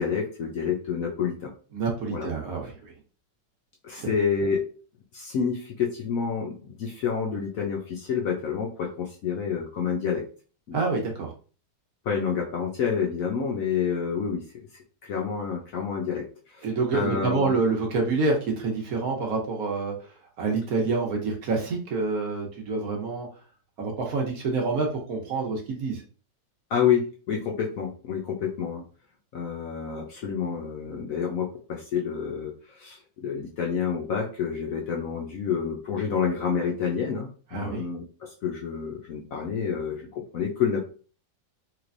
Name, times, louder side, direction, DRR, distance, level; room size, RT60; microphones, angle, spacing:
voice 1, 0.0-1.5 2.1-2.3 3.8-4.7 5.1-10.2 10.7-10.8 12.0-14.4 15.0-17.6 26.7-28.8 29.3-40.9, left 7 dB, 65° left, -1 dB, 0.9 m, -28 dB
voice 2, 1.7-2.7 4.0-4.1 10.7-11.3 16.6-20.1 20.4-23.3 23.8-26.0 37.5-37.8, right 3 dB, 60° right, 0 dB, 1.2 m, -27 dB
3.2 x 3.2 x 2.5 m, 0.38 s
omnidirectional pair, 1.9 m